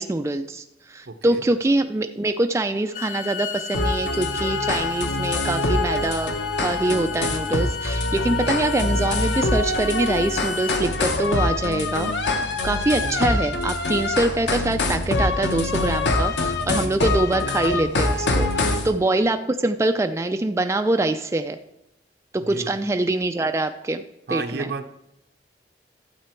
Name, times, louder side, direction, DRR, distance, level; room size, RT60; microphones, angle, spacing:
voice 1, 0.0-6.3 6.6-12.1 12.6-21.6 22.3-24.0 24.3-24.7, right 2 dB, 15° right, 7 dB, 0.4 m, -24 dB
voice 2, 1.1-1.4 16.6-16.8 18.6-18.8 22.4-22.7 24.3-24.9, right 4 dB, 65° right, 8 dB, 0.8 m, -33 dB
Bowed string instrument, 2.8-10.8, left 8 dB, 50° left, 1.0 m, -34 dB
sound 1, 3.7-18.9, left 2 dB, 85° left, 1.0 m, -24 dB
12.5 x 7.6 x 4.4 m, 0.86 s
head